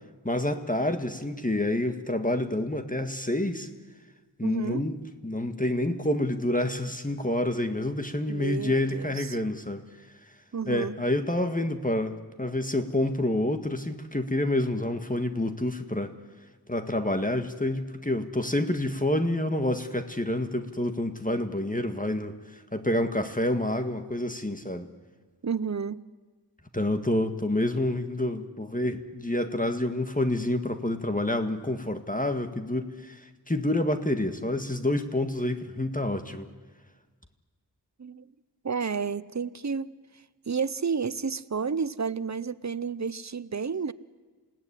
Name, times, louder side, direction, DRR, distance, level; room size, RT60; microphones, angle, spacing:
voice 1, 0.2-3.7 4.4-5.0 5.2-9.8 10.7-16.1 16.7-24.9 26.7-36.5, left 1 dB, 20° left, 7 dB, 1.7 m, -28 dB
voice 2, 4.4-4.8 8.3-9.4 10.5-11.0 25.4-26.0 38.0-38.2 38.6-39.9 40.5-43.9, right 5 dB, 40° right, 16 dB, 0.8 m, -31 dB
28.5 x 17.0 x 10.0 m, 1.4 s
wide cardioid pair, 50°, 42 cm